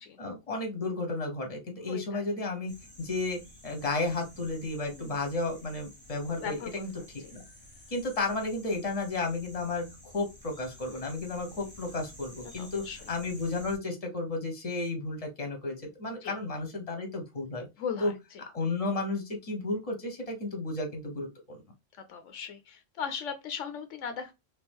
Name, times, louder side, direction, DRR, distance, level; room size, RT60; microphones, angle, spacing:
voice 1, 0.2-2.7 3.0-6.9 7.3-7.4 7.9-17.7 18.0-18.1 18.5-21.6, left 2 dB, 30° left, 1.1 m, -33 dB
voice 2, 1.9-2.2 4.9-5.2 6.4-7.3 12.6-13.1 16.2-16.3 17.8-18.4 22.1-24.3, left 7 dB, 75° left, 0.9 m, -38 dB
sound 1, 2.7-13.8, left 1 dB, 10° left, 1.0 m, -52 dB
3.2 x 3.0 x 3.5 m
omnidirectional pair, 1.3 m